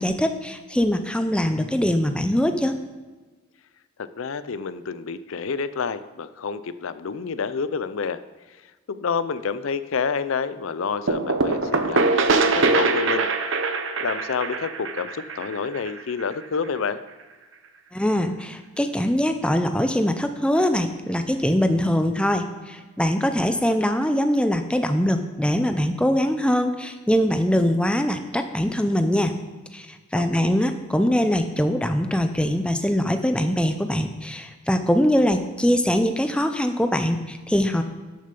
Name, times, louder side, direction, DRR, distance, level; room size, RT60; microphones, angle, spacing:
voice 1, 0.0-2.8 17.9-29.3 29.7-29.9 30.1-37.8, equal, 5° left, 7 dB, 0.6 m, -22 dB
voice 2, 4.0-8.2 8.5-13.6 14.0-17.0 30.1-30.6, left 5 dB, 70° left, 13 dB, 0.5 m, -29 dB
sound 1, 11.1-16.7, right 3 dB, 60° right, 0.8 m, -23 dB
12.0 x 6.7 x 5.3 m, 1.3 s
head